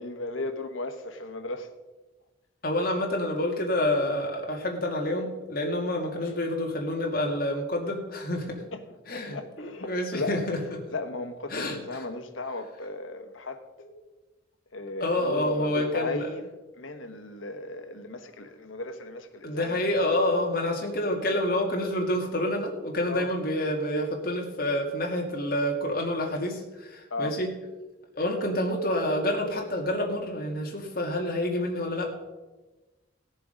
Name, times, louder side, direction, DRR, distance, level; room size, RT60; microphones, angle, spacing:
voice 1, 0.0-1.7 6.2-6.3 8.7-8.8 9.1-10.4 10.9-13.6 14.7-16.4 16.8-19.7 23.1-23.3 27.1-27.4, left 2 dB, 90° left, 1.2 m, -35 dB
voice 2, 2.6-8.6 9.1-10.8 11.5-12.0 13.8-13.9 15.0-16.3 19.4-27.5 28.2-32.3, left 1 dB, 50° left, 2.3 m, -28 dB
17.0 x 6.8 x 5.2 m
head